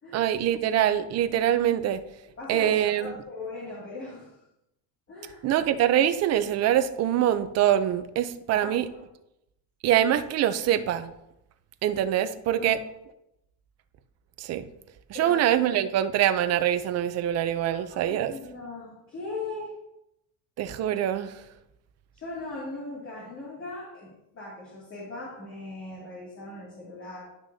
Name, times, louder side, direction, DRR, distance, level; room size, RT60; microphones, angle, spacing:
voice 1, 0.1-2.0 2.5-3.2 5.4-8.9 9.8-11.1 11.8-12.8 14.4-14.6 15.1-18.3 20.6-21.3, right 11 dB, 40° right, 11 dB, 0.6 m, -24 dB
voice 2, 2.4-4.4 5.1-5.4 8.5-9.0 12.5-12.7 15.1-15.4 17.7-19.7 22.1-27.2, left 2 dB, 30° left, -6 dB, 2.5 m, -39 dB
11.0 x 6.2 x 2.8 m, 0.85 s
cardioid pair, 140°, 39 cm